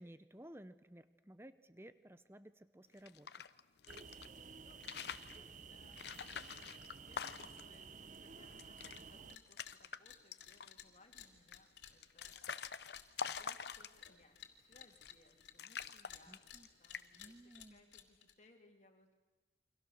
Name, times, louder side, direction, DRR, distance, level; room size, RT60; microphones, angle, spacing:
voice 1, 0.0-3.3 16.3-16.7 17.1-17.8, right 1 dB, 15° right, 13 dB, 0.8 m, -56 dB
sound 1, 2.9-4.3 4.7-5.4 5.9-7.8 8.1-8.2 8.5-9.0 9.3-10.0 10.3-10.8 11.5-14.2 14.9-15.3 15.6-16.7 16.9-17.3, left 6 dB, 65° left, 0.8 m, -46 dB
sound 2, 3.9-9.4, right 5 dB, 40° right, 0.9 m, -54 dB
voice 2, 4.6-6.8 7.1-12.4 13.1-19.1, left 2 dB, 40° left, 3 dB, 2.6 m, -67 dB
sound 3, 8.9-9.0 9.3-9.8 10.0-15.5 15.8-18.3, left 9 dB, 85° left, 2.7 m, -55 dB
29.5 x 25.0 x 6.5 m, 1.2 s
head